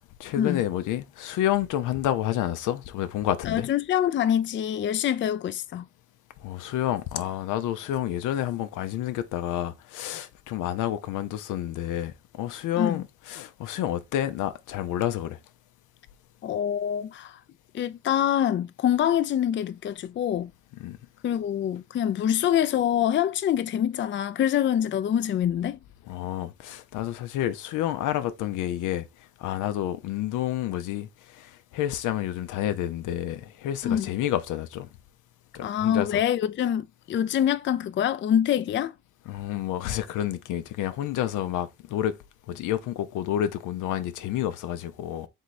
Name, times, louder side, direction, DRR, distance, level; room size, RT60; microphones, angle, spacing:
voice 1, 0.2-3.7 6.4-15.4 20.8-21.0 26.1-34.9 35.5-36.2 39.3-42.2 42.5-45.3, left 12 dB, 85° left, 0.6 m, -29 dB
voice 2, 3.4-5.8 12.8-13.0 16.4-17.4 17.7-20.5 21.2-25.8 33.8-34.1 35.6-38.9, left 10 dB, 40° left, 0.4 m, -25 dB
3.6 x 3.3 x 4.1 m
cardioid pair, 90°, 30 cm